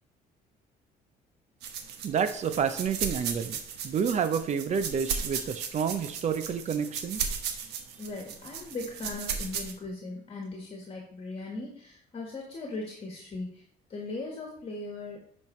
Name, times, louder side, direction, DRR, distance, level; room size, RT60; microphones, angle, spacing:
sound 1, 1.6-9.7, right 7 dB, 80° right, 1.1 m, -35 dB
voice 1, 2.0-7.2, right 7 dB, 45° right, 10 dB, 0.7 m, -29 dB
voice 2, 8.0-13.6 13.9-15.2, left 2 dB, 35° left, -1 dB, 1.6 m, -38 dB
10.5 x 5.4 x 3.2 m, 0.64 s
cardioid pair, 110°, 17 cm